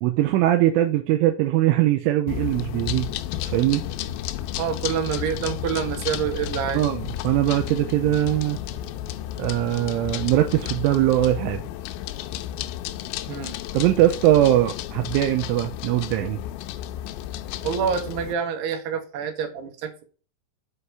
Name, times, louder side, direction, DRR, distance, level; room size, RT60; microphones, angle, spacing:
voice 1, 0.0-3.1 3.4-3.8 6.7-8.6 9.4-11.6 13.7-16.4, right 14 dB, 80° right, 3.1 m, -21 dB
sound 1, 2.3-18.3, left 12 dB, 85° left, 3.2 m, -32 dB
voice 2, 4.6-6.8 13.3-13.5 17.6-20.0, right 7 dB, 60° right, 3.5 m, -27 dB
8.0 x 5.6 x 6.9 m
omnidirectional pair, 5.9 m